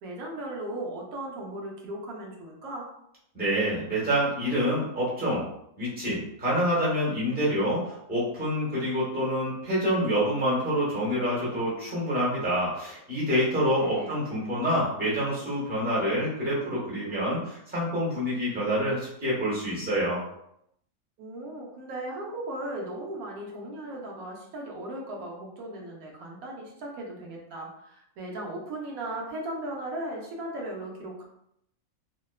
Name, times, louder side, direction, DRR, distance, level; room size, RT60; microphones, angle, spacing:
voice 1, 0.0-2.9 13.8-14.2 21.2-31.3, right 1 dB, 80° right, -1 dB, 1.1 m, -37 dB
voice 2, 3.3-5.4 5.8-20.2, equal, 10° right, -8 dB, 0.8 m, -27 dB
2.8 x 2.2 x 2.2 m, 0.76 s
omnidirectional pair, 1.5 m